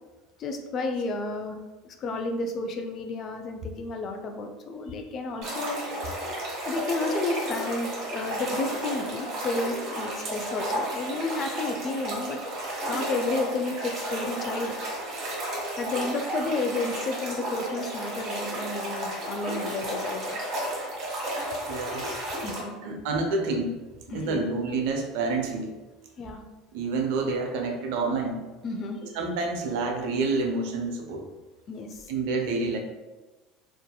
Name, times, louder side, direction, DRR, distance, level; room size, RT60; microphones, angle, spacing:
voice 1, 0.4-1.6 2.0-5.8 6.2-6.3 6.6-12.4 12.9-14.7 15.8-20.4 22.4-22.8 24.1-24.4 26.2-26.4 28.6-29.0 31.7-32.1, left 2 dB, 45° left, 5 dB, 0.4 m, -31 dB
sound 1, 5.4-22.6, right 1 dB, 50° right, 1.0 m, -33 dB
voice 2, 21.7-22.1 22.8-23.8 24.1-25.8 26.7-28.4 29.1-31.3 32.1-32.8, right 3 dB, 70° right, 3 dB, 0.4 m, -28 dB
2.6 x 2.4 x 2.2 m, 1.2 s
hypercardioid pair, 75°, 0 cm